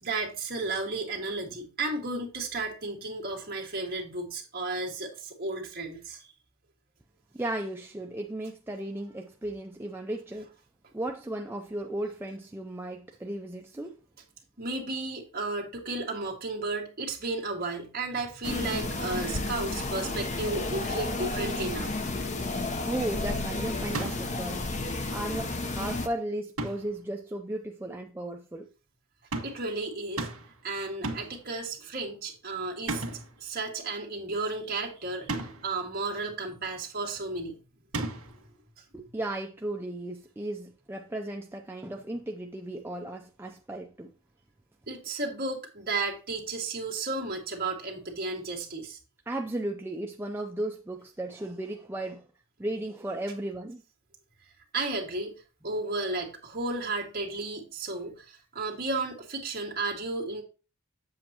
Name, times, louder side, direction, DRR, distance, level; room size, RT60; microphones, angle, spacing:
voice 1, 0.0-6.2 14.6-21.9 29.4-30.3 30.6-33.0 33.4-37.6 38.2-38.4 44.9-49.0 54.7-55.3 55.6-60.4, right 3 dB, 45° right, 2.0 m, -33 dB
voice 2, 7.3-10.5 10.9-14.0 22.8-24.7 25.1-28.7 38.9-44.1 49.3-52.3 52.6-53.8, right 1 dB, 10° right, 0.4 m, -35 dB
sound 1, 18.4-26.1, left 2 dB, 35° left, 0.7 m, -32 dB
sound 2, 23.9-24.4 26.6-27.0 29.3-29.7 30.2-30.6 31.0-31.4 32.9-33.4 35.3-35.7 37.9-38.5, right 2 dB, 85° right, 1.7 m, -34 dB
7.7 x 7.5 x 2.9 m
head